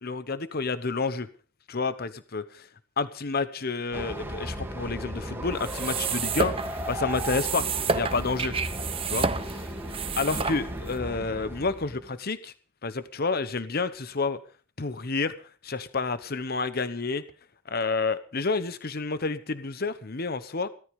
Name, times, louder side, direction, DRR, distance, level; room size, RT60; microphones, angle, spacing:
voice 1, 0.0-1.3 1.7-2.7 3.0-8.5 9.1-9.2 10.2-12.5 12.8-14.4 14.8-15.3 15.6-17.2 17.7-20.7, left 4 dB, 45° left, 13 dB, 0.9 m, -29 dB
Train, 3.9-12.1, equal, 10° right, 2.5 m, -36 dB
sound 1, 5.5-11.0, right 5 dB, 25° right, 0.8 m, -30 dB
17.0 x 13.0 x 5.3 m, 0.39 s
head